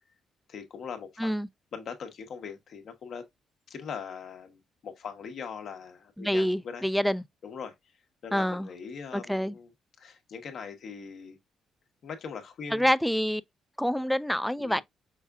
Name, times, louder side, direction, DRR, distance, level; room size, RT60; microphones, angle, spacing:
voice 1, 0.5-1.3 1.7-3.3 3.7-6.8 7.4-7.7 8.2-9.7 10.0-11.4 12.0-12.9 14.6-14.8, left 6 dB, 65° left, 1.0 m, -41 dB
voice 2, 6.2-7.2 8.3-8.7 9.1-9.6 12.7-13.4 13.8-14.8, equal, ahead, 0.3 m, -27 dB
5.6 x 3.5 x 2.3 m
cardioid pair, 90°, 0 cm